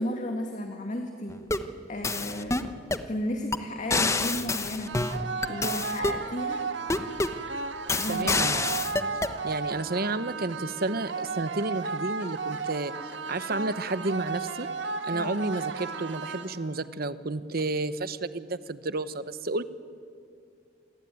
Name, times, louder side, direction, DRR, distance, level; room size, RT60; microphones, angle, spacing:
voice 1, 0.0-1.4 1.9-2.7 3.1-4.9 5.5-6.6 8.0-8.4 15.1-15.4, left 1 dB, 40° left, 4 dB, 2.0 m, -33 dB
sound 1, 1.3-1.7 2.0-3.1 3.5-3.6 3.9-6.2 6.9-7.4 7.9-9.4, left 3 dB, 15° left, 1.0 m, -28 dB
sound 2, 4.9-16.9, right 5 dB, 85° right, 1.7 m, -34 dB
voice 2, 8.1-8.7 9.4-12.9 13.3-14.7 15.0-19.6, right 2 dB, 55° right, 13 dB, 1.1 m, -31 dB
28.0 x 21.5 x 9.4 m, 2.3 s
head